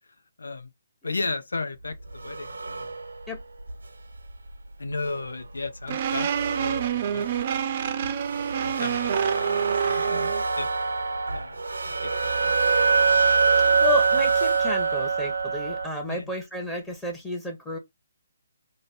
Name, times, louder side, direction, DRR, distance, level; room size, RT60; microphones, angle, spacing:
voice 1, 0.4-0.7 1.0-2.9 4.8-7.3 8.5-10.3 10.6-10.7 11.3-11.6 11.9-12.5 13.1-13.5 16.1-16.3, left 3 dB, 70° left, 0.6 m, -35 dB
sound 1, 1.9-3.7 4.2-4.3 5.0-5.2 5.6-5.7 5.9-7.6 8.0-15.9, right 4 dB, 75° right, 0.6 m, -25 dB
sound 2, 5.9-10.4, right 8 dB, 40° right, 0.6 m, -27 dB
voice 2, 13.6-17.8, left 2 dB, 10° left, 1.0 m, -32 dB
5.2 x 2.2 x 4.1 m
figure-of-eight pair, 140°, 0 cm